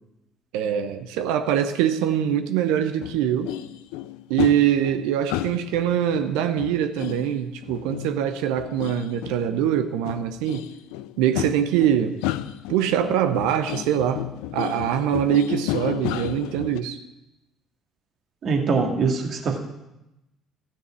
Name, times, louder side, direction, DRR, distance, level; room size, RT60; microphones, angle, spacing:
voice 1, 0.5-3.6 4.3-10.6 11.2-12.2 12.7-14.3 14.5-17.0, right 10 dB, 70° right, 9 dB, 0.7 m, -23 dB
sound 1, 3.0-9.8 10.1-16.8, left 14 dB, 70° left, 0.4 m, -32 dB
voice 2, 18.4-19.6, right 4 dB, 50° right, 2 dB, 2.1 m, -23 dB
14.5 x 6.5 x 7.4 m, 0.93 s
figure-of-eight pair, 55°, 0 cm